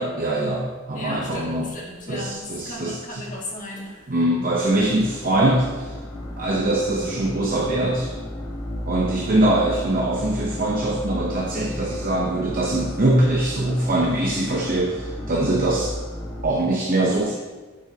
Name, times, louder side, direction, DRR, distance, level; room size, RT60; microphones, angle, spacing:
voice 1, 0.0-1.7 2.1-3.2 4.1-5.9 6.4-8.1 8.9-15.9 16.4-17.3, right 1 dB, 40° right, -2 dB, 0.8 m, -22 dB
voice 2, 0.9-4.2, left 1 dB, 40° left, -2 dB, 1.6 m, -36 dB
sound 1, 4.5-16.4, left 1 dB, 20° left, 1.4 m, -34 dB
7.7 x 7.7 x 2.8 m, 1.3 s
head